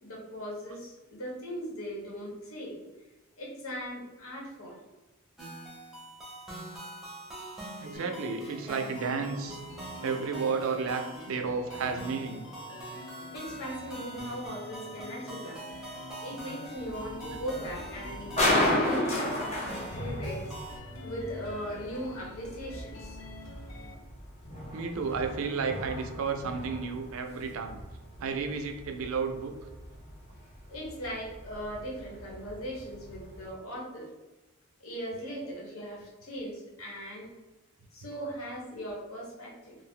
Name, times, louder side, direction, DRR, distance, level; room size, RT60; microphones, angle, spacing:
voice 1, 0.0-2.7 3.4-4.8 13.3-15.6 16.2-20.4 21.0-23.2 30.7-34.1 34.8-37.3 37.9-39.8, equal, 80° left, -3 dB, 0.9 m, -39 dB
sound 1, 5.4-20.8, right 2 dB, ahead, 0.6 m, -44 dB
voice 2, 7.8-9.6 10.0-11.0 11.3-12.4 24.7-27.8 28.2-29.5, right 5 dB, 70° right, 5 dB, 0.4 m, -32 dB
sound 2, 7.9-23.9, left 3 dB, 60° left, 0.4 m, -47 dB
sound 3, 16.8-33.5, left 1 dB, 30° left, 0.8 m, -35 dB
2.4 x 2.0 x 3.5 m, 1.1 s
head